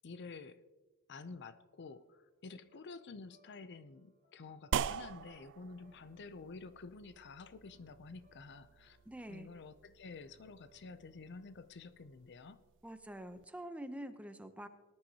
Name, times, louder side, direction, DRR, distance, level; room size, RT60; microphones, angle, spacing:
voice 1, 0.0-0.6 1.1-9.0 9.3-12.6, left 4 dB, 50° left, 13 dB, 0.5 m, -50 dB
sound 1, 1.6-12.5, right 2 dB, 35° right, 4.7 m, -71 dB
sound 2, 4.7-13.4, right 8 dB, 55° right, 0.3 m, -44 dB
voice 2, 9.1-9.5 12.8-14.7, right 1 dB, 5° right, 9 dB, 0.6 m, -46 dB
19.0 x 10.5 x 2.9 m, 1.2 s
head